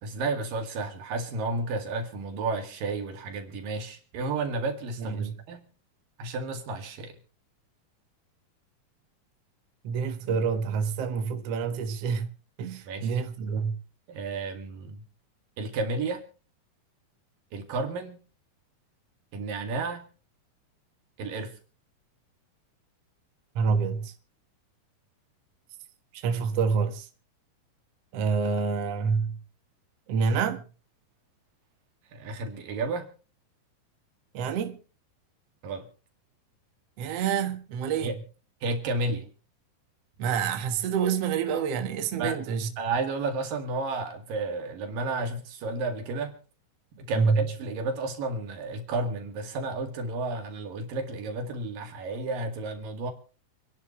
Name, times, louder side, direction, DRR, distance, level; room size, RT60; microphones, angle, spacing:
voice 1, 0.0-5.7 6.2-7.2 12.9-13.2 14.1-15.0 15.6-16.2 17.5-18.2 19.3-20.1 21.2-21.6 32.1-33.1 35.6-35.9 38.0-38.2 38.6-39.3 42.2-42.4 42.8-46.4 46.9-53.1, right 3 dB, 85° right, 3.9 m, -32 dB
voice 2, 5.0-5.4 9.8-12.3 12.6-13.8 23.6-24.1 26.1-27.1 28.1-29.4 30.1-30.6 34.3-34.8 37.0-38.1 40.2-42.7 47.1-47.5, right 6 dB, 55° right, 2.3 m, -27 dB
28.0 x 11.0 x 3.1 m
omnidirectional pair, 3.9 m